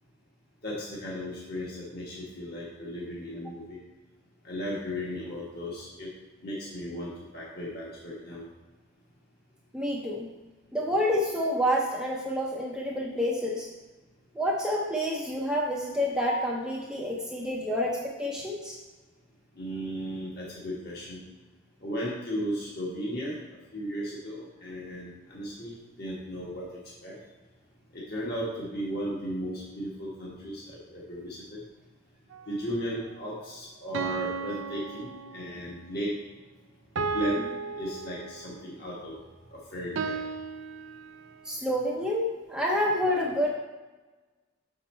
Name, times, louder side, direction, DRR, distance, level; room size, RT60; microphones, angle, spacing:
voice 1, 0.6-3.8 4.4-6.1 6.4-8.4 19.5-21.2 21.8-23.4 23.7-26.7 27.0-27.2 27.9-31.6 32.5-36.1 37.1-37.5 37.8-39.1 39.5-40.2, equal, 50° left, -6 dB, 1.5 m, -35 dB
voice 2, 9.7-10.3 10.7-13.7 14.3-18.8 41.4-43.5, equal, 5° right, -2 dB, 0.6 m, -28 dB
sound 1, 32.3-32.5 33.9-35.7 37.0-38.7 40.0-41.5, right 5 dB, 65° right, 0.5 m, -35 dB
6.4 x 5.4 x 4.3 m, 1.2 s
head